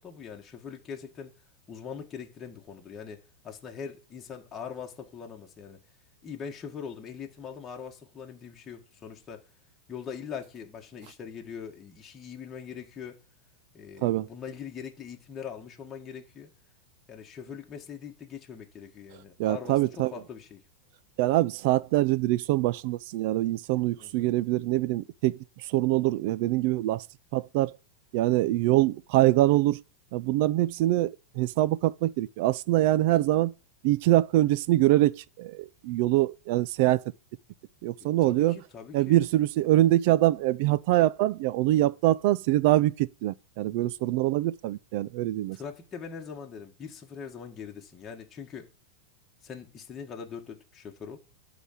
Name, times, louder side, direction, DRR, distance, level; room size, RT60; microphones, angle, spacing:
voice 1, 0.0-1.3 1.7-5.8 6.2-9.5 9.9-13.2 13.7-16.5 17.1-20.6 24.0-24.3 28.4-28.7 38.0-39.2 45.5-48.7 49.4-51.2, left 7 dB, 20° left, 1.7 m, -42 dB
voice 2, 19.4-20.1 21.2-25.3 25.7-27.0 27.3-27.7 28.1-29.8 30.1-33.5 33.8-37.0 37.8-38.6 38.9-45.6, right 15 dB, 55° right, 0.5 m, -24 dB
11.5 x 4.0 x 7.3 m
supercardioid pair, 130°, 0 cm